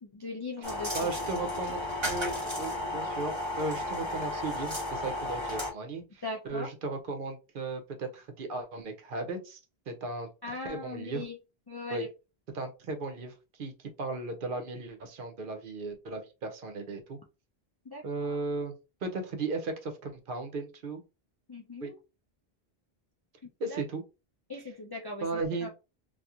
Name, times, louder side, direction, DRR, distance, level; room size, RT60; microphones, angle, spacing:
voice 1, 0.0-1.1 6.2-6.7 10.4-11.4 11.7-12.1 17.8-18.4 21.5-22.0 23.4-23.8 24.5-25.7, left 3 dB, 40° left, -1 dB, 0.3 m, -40 dB
sound 1, 0.6-5.7, left 1 dB, 30° right, 1.0 m, -33 dB
voice 2, 0.9-9.6 9.9-11.2 11.9-12.1 12.5-17.2 18.0-18.7 19.0-21.0 21.8-21.9 23.6-24.0 25.2-25.7, right 3 dB, 60° right, 6 dB, 0.7 m, -36 dB
2.8 x 2.4 x 2.3 m, 0.29 s
omnidirectional pair, 1.0 m